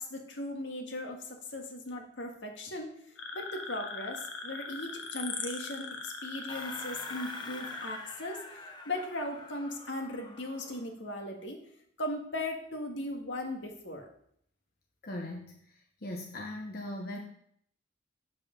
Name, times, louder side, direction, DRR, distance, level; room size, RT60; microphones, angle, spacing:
voice 1, 0.0-2.9 3.3-11.6 12.0-14.1, left 1 dB, 70° left, 2 dB, 1.8 m, -38 dB
sound 1, 3.2-8.0, left 4 dB, 90° left, 1.5 m, -40 dB
sound 2, 6.5-10.9, left 2 dB, 25° left, 0.9 m, -46 dB
voice 2, 15.0-15.6 16.0-17.2, left 1 dB, 50° left, 0 dB, 1.1 m, -39 dB
8.1 x 7.5 x 5.2 m, 0.67 s
head